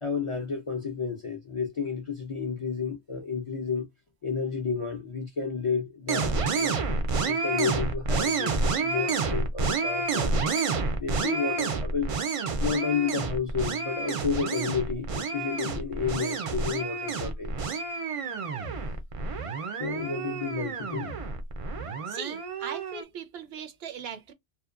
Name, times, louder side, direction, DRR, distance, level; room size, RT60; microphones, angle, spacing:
voice 1, 0.0-3.9 4.2-10.4 11.0-12.1 12.6-17.5 19.8-21.1, left 5 dB, 45° left, 0.4 m, -31 dB
sound 1, 6.1-23.0, right 4 dB, 55° right, 0.4 m, -29 dB
voice 2, 22.1-24.3, right 7 dB, 70° right, 0.8 m, -39 dB
2.8 x 2.1 x 2.3 m
omnidirectional pair, 1.1 m